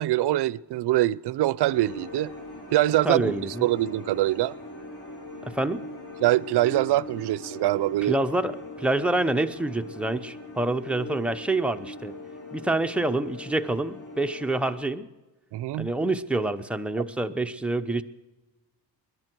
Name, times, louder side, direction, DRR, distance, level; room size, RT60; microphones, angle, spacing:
voice 1, 0.0-2.3 2.7-3.3 3.6-4.5 6.2-8.2 15.5-15.9, right 15 dB, 65° right, 0.5 m, -24 dB
sound 1, 1.7-14.7, left 1 dB, 40° left, 6.4 m, -41 dB
voice 2, 3.0-3.7 5.4-5.8 8.1-12.2 12.5-15.1 15.8-18.0, right 2 dB, 5° right, 0.7 m, -27 dB
21.0 x 11.0 x 4.5 m
cardioid pair, 85°, 43 cm